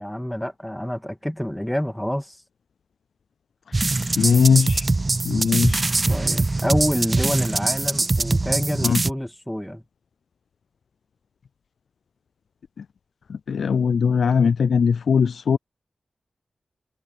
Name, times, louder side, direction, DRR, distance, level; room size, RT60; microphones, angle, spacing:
voice 1, 0.0-2.4 6.1-9.8, equal, 5° left, 1.9 m, -27 dB
voice 2, 3.7-4.9 5.3-5.9 8.8-9.0 12.8-12.9 13.3-15.6, left 6 dB, 85° left, 0.4 m, -20 dB
sound 1, 3.7-9.1, right 2 dB, 30° right, 0.4 m, -22 dB
wide cardioid pair, 95°, 0 cm